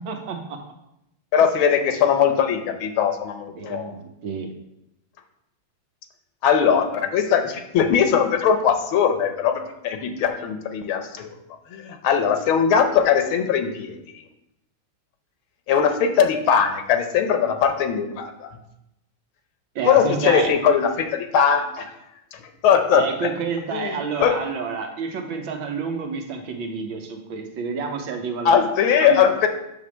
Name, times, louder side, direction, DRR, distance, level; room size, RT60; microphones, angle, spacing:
voice 1, 0.1-0.6 3.6-4.0 4.2-4.5 19.8-20.5 22.9-28.6 29.0-29.4, right 5 dB, 70° right, 3 dB, 1.6 m, -29 dB
voice 2, 1.3-4.0 6.4-11.4 11.7-13.9 15.7-18.5 19.9-21.9 22.3-22.4 22.6-23.0 23.7-24.4 28.5-29.5, left 7 dB, 75° left, 7 dB, 1.6 m, -20 dB
7.7 x 3.5 x 6.2 m, 0.85 s
omnidirectional pair, 2.3 m